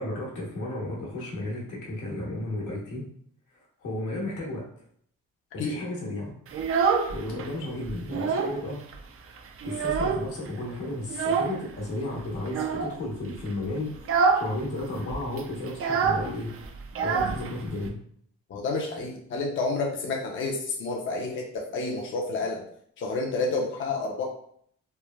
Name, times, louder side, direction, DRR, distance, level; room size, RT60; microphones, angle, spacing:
voice 1, 0.0-3.0 3.8-4.7 5.5-6.3 7.1-8.8 9.6-16.5 17.0-18.0, left 1 dB, 80° left, -4 dB, 1.0 m, -33 dB
Child speech kid speaking, 6.5-7.5 7.8-8.6 8.9-9.0 9.4-10.5 11.1-11.6 12.5-13.0 13.4-13.6 14.0-14.5 14.8-14.9 15.1-17.9, right 5 dB, 50° right, 0.4 m, -26 dB
voice 2, 18.5-22.6 23.0-24.3, left 3 dB, 40° left, 0 dB, 0.5 m, -29 dB
3.1 x 2.0 x 2.2 m, 0.64 s
cardioid pair, 90°, 30 cm